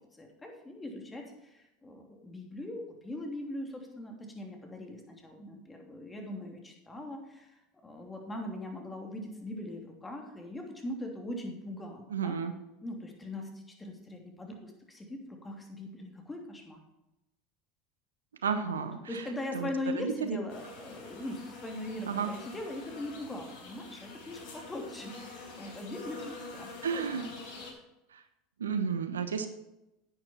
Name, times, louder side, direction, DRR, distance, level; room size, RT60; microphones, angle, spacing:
voice 1, 0.0-12.4 12.8-16.8 18.6-27.3, left 1 dB, 15° left, 2 dB, 3.0 m, -41 dB
voice 2, 12.1-12.5 18.4-19.2 19.5-20.4 22.1-22.3 26.8-27.2 28.1-28.2 28.6-29.5, right 6 dB, 85° right, 9 dB, 1.0 m, -32 dB
sound 1, 20.5-27.7, left 3 dB, 60° left, 4.1 m, -46 dB
10.5 x 9.3 x 4.5 m, 0.94 s
hypercardioid pair, 80°, 0 cm